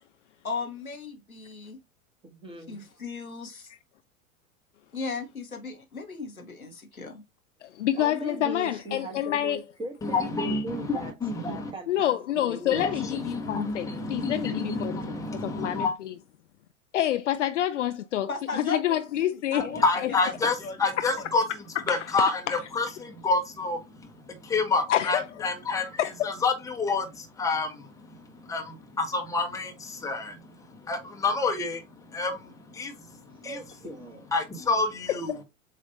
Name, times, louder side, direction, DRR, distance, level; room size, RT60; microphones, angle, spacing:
voice 1, 0.4-1.8 2.7-3.7 4.9-7.2 18.3-19.0 19.5-20.2 20.4-21.3, left 4 dB, 85° left, 1.1 m, -36 dB
voice 2, 2.2-2.8 7.9-11.1 11.5-13.1 33.4-34.3, right 1 dB, 10° right, 1.3 m, -39 dB
voice 3, 7.6-9.6 11.9-15.0 15.3-16.1 16.9-18.3 18.5-19.7 20.0-20.1 21.9-22.0 24.9-25.2 26.0-26.1, left 12 dB, 60° left, 0.5 m, -27 dB
voice 4, 10.0-11.7 12.7-15.9 19.7-21.4 21.9-33.6 34.3-35.4, left 3 dB, 10° left, 0.9 m, -29 dB
7.3 x 2.5 x 2.8 m
figure-of-eight pair, 90°, 42 cm